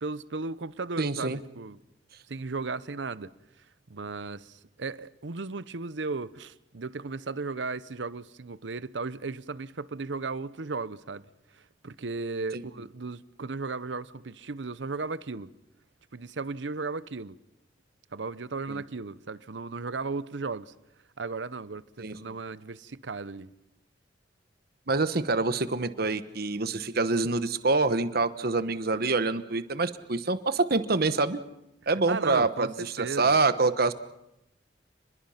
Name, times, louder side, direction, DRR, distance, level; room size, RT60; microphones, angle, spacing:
voice 1, 0.0-1.8 2.3-3.3 3.6-3.7 3.9-11.3 11.5-15.5 16.1-17.4 18.1-20.7 21.2-23.5 32.1-33.4, right 4 dB, 75° right, 0.8 m, -35 dB
voice 2, 1.0-1.4 12.5-12.6 18.7-18.8 22.0-22.1 24.9-31.4 31.9-33.9, right 3 dB, 55° right, 1.1 m, -26 dB
29.5 x 21.5 x 5.8 m
head